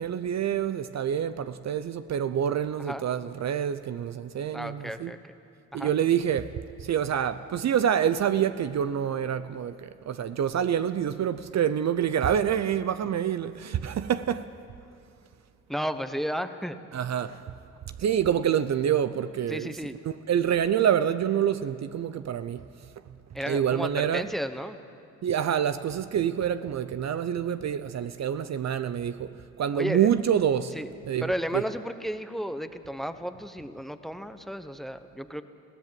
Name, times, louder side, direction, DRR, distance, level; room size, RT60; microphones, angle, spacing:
voice 1, 0.0-5.1 5.7-6.5 6.8-14.5 16.9-17.4 18.0-19.7 20.1-22.6 23.5-24.3 25.2-29.3 29.6-30.7 31.1-31.7, right 9 dB, 50° right, 0.7 m, -27 dB
voice 2, 4.5-5.3 5.7-5.9 15.7-16.8 19.5-20.0 23.3-24.8 29.8-30.1 30.7-30.9 31.2-35.4, equal, ahead, 1.1 m, -33 dB
21.0 x 16.0 x 7.7 m
supercardioid pair, 65°, 34 cm